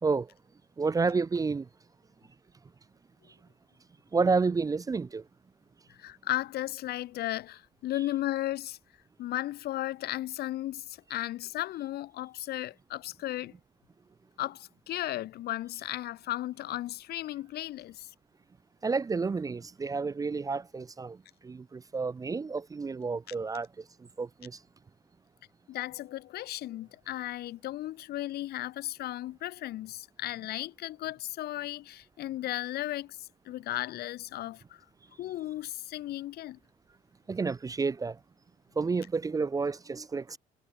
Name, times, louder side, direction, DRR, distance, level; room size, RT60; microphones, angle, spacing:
voice 1, 0.8-1.7 4.1-5.2 18.8-21.2 21.4-23.7 24.2-24.6 37.3-38.2 38.8-40.4, right 4 dB, 20° right, 0.6 m, -30 dB
voice 2, 5.9-8.8 9.2-13.5 14.4-18.1 25.7-34.8 35.2-36.6, left 14 dB, 70° left, 1.3 m, -35 dB
cardioid pair, 110°, 17 cm